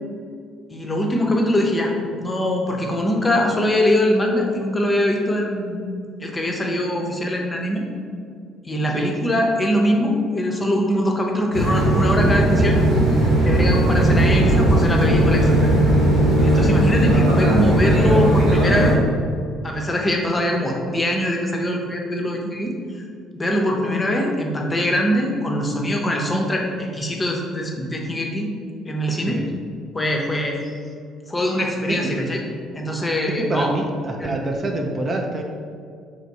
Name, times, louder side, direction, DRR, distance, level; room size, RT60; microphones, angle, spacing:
voice 1, 0.7-5.8 6.2-7.9 8.6-12.8 13.4-15.7 16.4-19.0 19.6-22.7 23.3-28.5 28.8-29.4 29.9-30.6 31.3-32.4 32.7-33.7 34.2-34.4, left 1 dB, 20° left, 1 dB, 0.6 m, -22 dB
sound 1, 11.5-18.9, right 1 dB, 70° right, 1.2 m, -17 dB
voice 2, 33.4-35.4, right 2 dB, 35° right, 2 dB, 0.4 m, -26 dB
3.0 x 2.5 x 4.1 m, 2.2 s
figure-of-eight pair, 50°, 0 cm